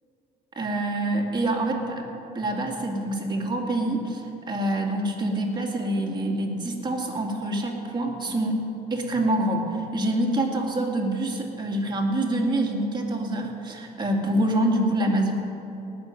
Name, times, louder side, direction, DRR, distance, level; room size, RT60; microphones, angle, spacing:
voice 1, 0.6-8.6 8.9-15.3, right 1 dB, 25° right, 0 dB, 2.4 m, -26 dB
18.0 x 6.6 x 9.1 m, 2.9 s
cardioid pair, 110°, 17 cm